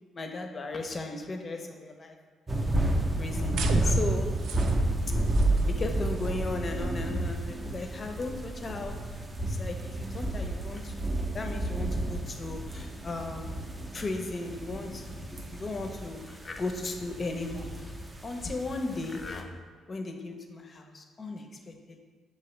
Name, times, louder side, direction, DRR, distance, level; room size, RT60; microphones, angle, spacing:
voice 1, 0.1-2.2 2.8-4.3 5.7-13.7 13.9-19.5 19.9-22.0, left 2 dB, 35° left, 4 dB, 0.6 m, -36 dB
sound 1, 2.5-19.4, right 1 dB, 20° right, 0.5 m, -31 dB
sound 2, 3.5-9.6, right 4 dB, 80° right, 0.3 m, -40 dB
5.9 x 2.7 x 3.1 m, 1.5 s
cardioid pair, 90°, 0 cm